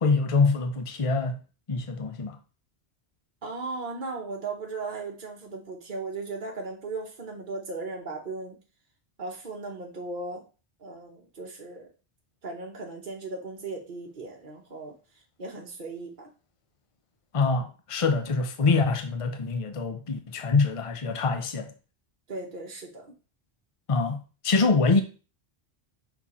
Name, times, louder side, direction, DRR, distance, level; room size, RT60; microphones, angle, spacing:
voice 1, 0.0-1.4 1.7-2.4 17.3-21.7 23.9-25.0, left 4 dB, 35° left, 0.8 m, -25 dB
voice 2, 3.4-8.6 9.2-10.4 10.8-11.9 12.4-14.9 15.4-16.3 22.3-23.1, right 3 dB, 50° right, 1.1 m, -37 dB
5.9 x 4.4 x 4.2 m
omnidirectional pair, 1.1 m